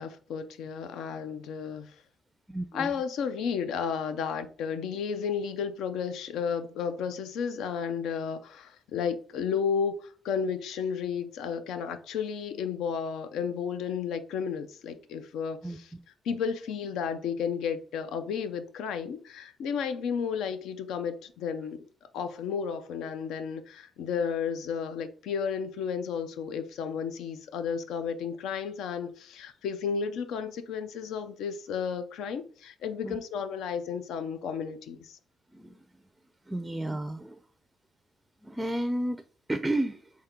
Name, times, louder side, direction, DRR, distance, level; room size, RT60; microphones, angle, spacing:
voice 1, 0.0-2.0 2.7-15.9 16.2-21.8 22.1-35.2, left 6 dB, 85° left, 0.6 m, -33 dB
voice 2, 2.5-3.0 15.6-15.8 33.0-33.2 35.5-35.8 36.5-37.4 38.4-39.2 39.5-40.1, right 1 dB, 10° right, 0.4 m, -32 dB
3.7 x 2.8 x 4.4 m
cardioid pair, 90°, 0 cm